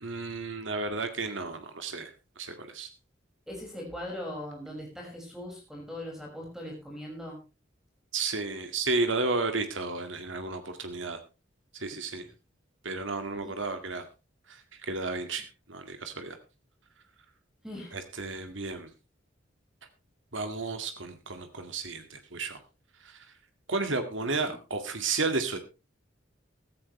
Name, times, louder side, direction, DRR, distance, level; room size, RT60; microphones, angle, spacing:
voice 1, 0.0-2.9 8.1-11.2 11.7-12.3 12.8-14.0 14.5-16.4 17.9-18.9 20.3-22.6 23.0-23.3 23.7-25.6, right 3 dB, 85° right, 7 dB, 2.0 m, -33 dB
voice 2, 3.5-7.4 13.4-13.5 17.6-18.0 24.3-24.6, left 1 dB, ahead, 0 dB, 5.7 m, -40 dB
16.0 x 13.5 x 3.2 m, 0.29 s
head